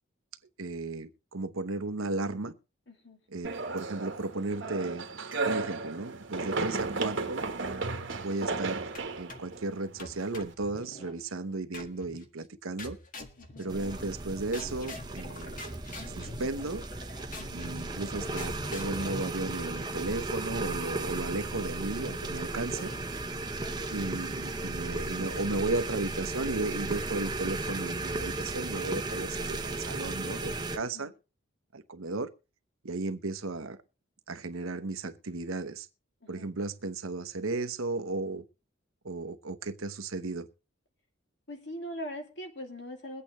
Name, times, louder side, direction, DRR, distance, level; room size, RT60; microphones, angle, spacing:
voice 1, 0.6-2.5 3.3-5.1 5.4-7.4 8.2-8.9 9.2-13.0 13.6-15.5 16.1-16.8 17.5-22.9 23.9-31.1 31.7-32.3 32.8-33.8 34.3-35.9 36.3-38.4 39.0-40.5, right 2 dB, 85° right, 0.9 m, -34 dB
voice 2, 2.9-3.2 13.4-13.7 17.5-17.8 22.5-23.0 23.4-23.8 30.8-31.1 36.2-36.5 41.5-43.2, equal, 55° left, 2.5 m, -43 dB
sound 1, 3.4-10.5, right 3 dB, 65° right, 1.2 m, -34 dB
sound 2, 8.9-9.6 10.0-11.2 11.7-12.3 12.8-14.2 14.5-20.2, left 1 dB, 40° left, 1.7 m, -45 dB
sound 3, 13.7-30.8, right 2 dB, 20° right, 0.7 m, -35 dB
22.5 x 8.4 x 3.1 m
head